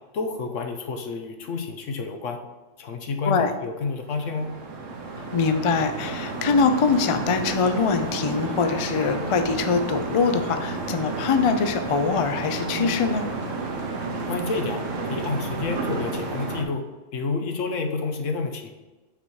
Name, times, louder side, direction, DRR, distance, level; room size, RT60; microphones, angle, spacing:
voice 1, 0.1-2.4 2.8-4.5 14.3-16.8 17.1-18.7, left 4 dB, 80° left, 5 dB, 1.2 m, -29 dB
sound 1, 4.0-16.6, right 3 dB, 80° right, 1.3 m, -31 dB
voice 2, 5.3-13.2, left 5 dB, 55° left, 8 dB, 0.3 m, -23 dB
5.9 x 4.2 x 4.6 m, 1.1 s
omnidirectional pair, 1.3 m